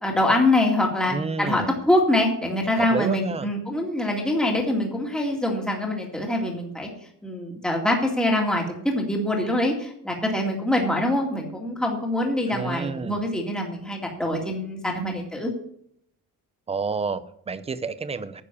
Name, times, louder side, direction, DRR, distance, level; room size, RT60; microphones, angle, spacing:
voice 1, 0.0-6.9 7.2-15.5, left 1 dB, ahead, 0 dB, 2.2 m, -24 dB
voice 2, 1.1-1.8 2.8-3.5 12.5-13.2 16.7-18.4, right 4 dB, 20° right, 13 dB, 0.6 m, -30 dB
9.9 x 7.2 x 8.3 m, 0.69 s
cardioid pair, 160°, 34 cm